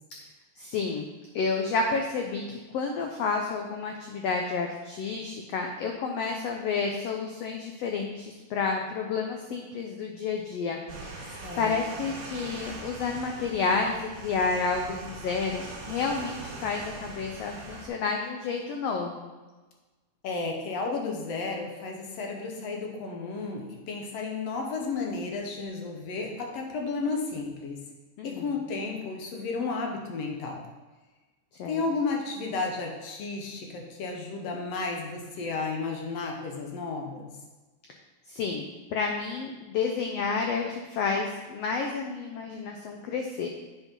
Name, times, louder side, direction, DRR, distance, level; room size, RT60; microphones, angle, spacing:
voice 1, 0.6-1.1 1.3-19.3 28.2-28.5 31.6-31.8 38.3-43.5, left 4 dB, 80° left, 2 dB, 1.4 m, -30 dB
sound 1, 10.9-17.9, right 3 dB, 45° right, 2.0 m, -41 dB
voice 2, 11.4-11.7 20.2-27.8 28.2-30.7 31.7-37.3, left 4 dB, 65° left, 1 dB, 1.8 m, -33 dB
7.8 x 4.9 x 5.2 m, 1.2 s
omnidirectional pair, 3.7 m